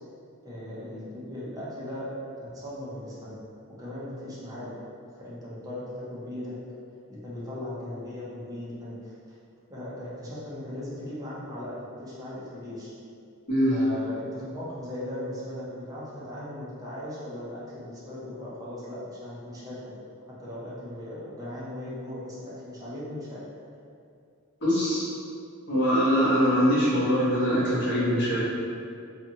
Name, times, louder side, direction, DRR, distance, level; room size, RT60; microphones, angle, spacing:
voice 1, 0.4-2.1 2.4-4.8 5.2-6.6 7.1-9.4 9.7-12.9 13.7-20.0 20.4-23.4, left 1 dB, 15° right, -8 dB, 0.6 m, -38 dB
voice 2, 24.6-25.1 25.7-28.4, equal, 55° left, -9 dB, 0.9 m, -23 dB
2.5 x 2.3 x 2.7 m, 2.4 s
head